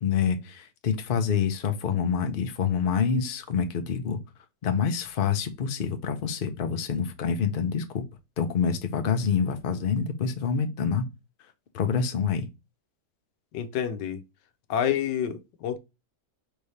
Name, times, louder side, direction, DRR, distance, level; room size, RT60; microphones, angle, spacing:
voice 1, 0.0-4.2 4.6-8.0 8.4-11.0 11.7-12.5, left 6 dB, 50° left, 0.6 m, -27 dB
voice 2, 13.5-14.2 14.7-15.8, left 9 dB, 90° left, 1.4 m, -28 dB
4.6 x 3.3 x 2.7 m
omnidirectional pair, 1.8 m